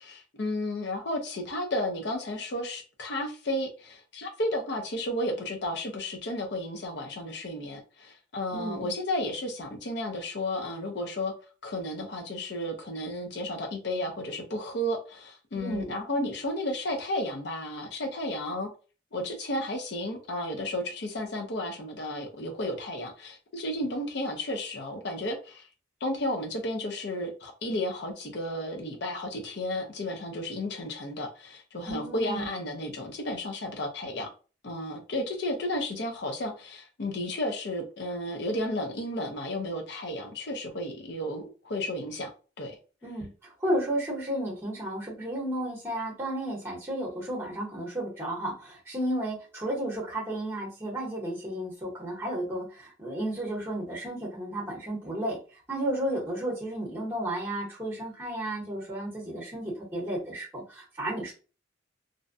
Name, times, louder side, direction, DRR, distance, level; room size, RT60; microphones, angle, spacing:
voice 1, 0.0-11.3 11.6-18.7 19.1-25.7 26.0-34.3 34.6-42.3 42.6-42.8, left 1 dB, 60° left, 0.5 m, -33 dB
voice 2, 8.5-8.9 15.5-15.9 31.9-32.5 43.0-61.3, right 1 dB, 10° right, 0.9 m, -33 dB
2.5 x 2.1 x 2.5 m
head